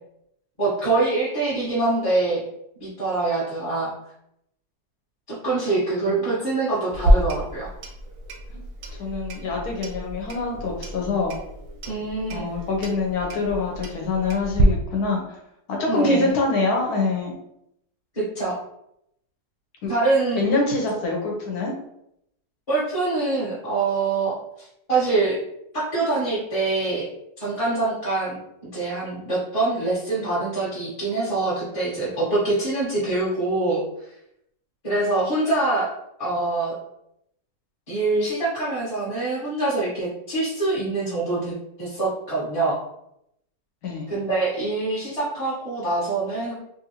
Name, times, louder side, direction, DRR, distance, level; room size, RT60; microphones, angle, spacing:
voice 1, 0.6-2.5 2.8-3.9 5.3-7.7 11.8-12.6 15.9-16.3 18.1-18.6 19.9-20.4 22.7-25.4 25.7-27.1 27.4-28.4 28.7-33.8 34.8-35.9 36.2-36.7 37.9-42.8 44.1-46.5, right 3 dB, 25° left, -9 dB, 0.9 m, -24 dB
Clock, 6.9-14.6, right 1 dB, 65° right, 0.9 m, -28 dB
voice 2, 9.0-11.4 12.3-15.4 15.7-17.3 19.8-19.9 20.4-21.7 43.8-44.1, left 3 dB, 70° left, 0 dB, 1.2 m, -25 dB
3.3 x 2.6 x 2.8 m, 0.78 s
omnidirectional pair, 1.8 m